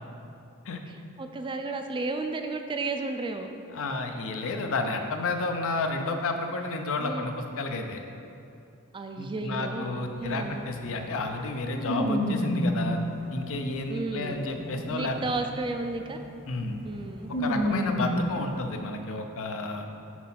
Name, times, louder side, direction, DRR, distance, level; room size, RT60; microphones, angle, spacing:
voice 1, 0.9-3.5 7.0-7.3 8.9-10.7 13.9-14.4 14.9-16.2 16.8-17.3, right 3 dB, 20° right, 5 dB, 0.3 m, -33 dB
voice 2, 3.7-8.0 9.2-13.0 13.3-15.2 16.5-16.8 17.4-19.9, left 3 dB, 65° left, 5 dB, 0.6 m, -31 dB
sound 1, 10.2-10.3 10.6-13.8 14.3-18.4, equal, 45° left, 1.6 m, -30 dB
6.1 x 4.2 x 5.7 m, 2.6 s
head